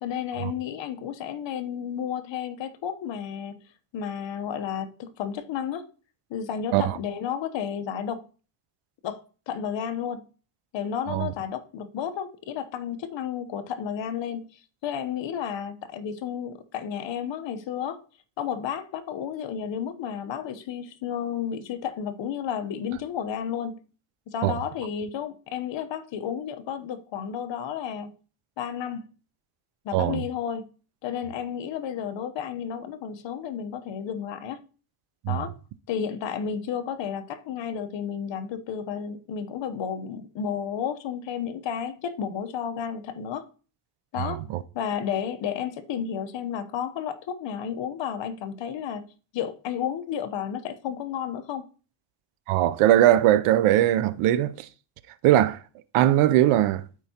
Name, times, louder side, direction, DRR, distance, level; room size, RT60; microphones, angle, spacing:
voice 1, 0.0-3.6 3.9-5.8 6.3-8.2 9.0-10.2 10.7-18.0 18.4-23.8 24.3-28.1 28.6-29.1 29.8-30.7 31.0-34.6 35.3-35.5 35.9-43.5 44.1-44.4 44.7-49.1 49.3-51.7, left 8 dB, 60° left, 0.9 m, -32 dB
voice 2, 44.2-44.6 52.5-54.7 55.2-55.6 55.9-56.8, right 13 dB, 90° right, 0.6 m, -20 dB
13.0 x 4.6 x 2.8 m
cardioid pair, 115°, 49 cm